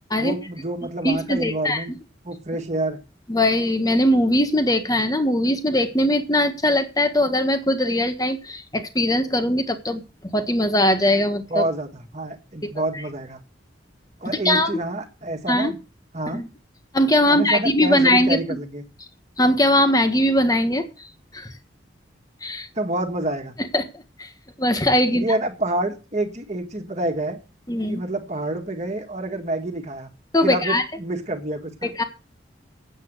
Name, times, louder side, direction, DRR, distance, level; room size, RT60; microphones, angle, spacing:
voice 1, 0.2-1.9 2.2-3.0 11.5-13.4 14.2-15.8 16.1-16.5 17.3-18.8 22.8-23.6 25.1-27.4 27.9-30.1 30.4-31.9, right 1 dB, 40° right, 4 dB, 1.8 m, -27 dB
voice 2, 1.0-1.8 3.3-10.0 10.3-11.6 12.6-12.7 14.2-14.7 15.5-15.7 16.3-16.5 16.9-18.4 19.4-20.8 21.3-21.5 22.4-22.7 23.7-23.8 24.2-24.3 24.6-25.2 27.7-28.0 30.3-30.8 32.0-32.1, left 1 dB, 20° left, 8 dB, 1.4 m, -20 dB
8.9 x 7.7 x 7.9 m, 0.32 s
head